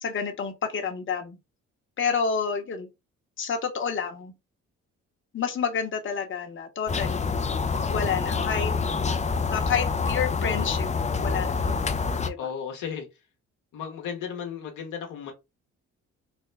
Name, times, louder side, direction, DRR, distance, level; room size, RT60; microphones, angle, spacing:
voice 1, 0.0-1.4 2.0-2.9 3.4-4.3 5.3-7.4 7.9-8.7 9.5-10.9 11.2-11.8 12.3-12.5, left 6 dB, 40° left, 1.0 m, -29 dB
sound 1, 6.9-12.3, left 5 dB, 20° left, 0.5 m, -27 dB
voice 2, 12.4-13.2 13.7-15.3, left 7 dB, 70° left, 1.0 m, -35 dB
3.4 x 2.1 x 3.3 m
supercardioid pair, 65°, 32 cm